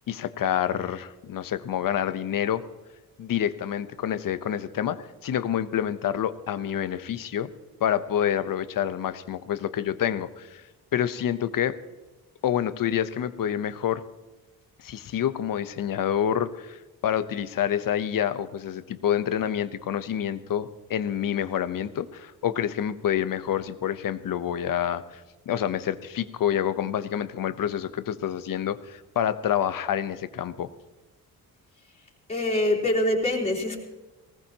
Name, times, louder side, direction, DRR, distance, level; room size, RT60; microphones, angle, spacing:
voice 1, 0.1-2.6 3.2-7.5 7.8-10.6 10.9-11.8 12.4-14.0 14.8-30.7, left 10 dB, 65° left, 13 dB, 0.9 m, -28 dB
voice 2, 32.3-33.8, left 1 dB, 15° left, -4 dB, 3.6 m, -24 dB
20.0 x 18.5 x 2.9 m, 1.2 s
wide cardioid pair, 150°, 37 cm